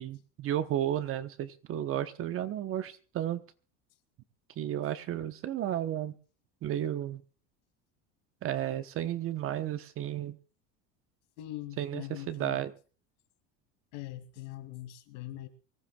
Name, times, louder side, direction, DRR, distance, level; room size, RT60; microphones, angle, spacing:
voice 1, 0.0-3.4 4.6-6.1 6.6-7.2 8.4-10.4 11.8-12.7, right 11 dB, 35° right, 1.0 m, -33 dB
voice 2, 11.4-12.6 13.9-15.5, left 15 dB, 80° left, 2.6 m, -42 dB
24.5 x 14.5 x 2.3 m
cardioid pair, 145°, 36 cm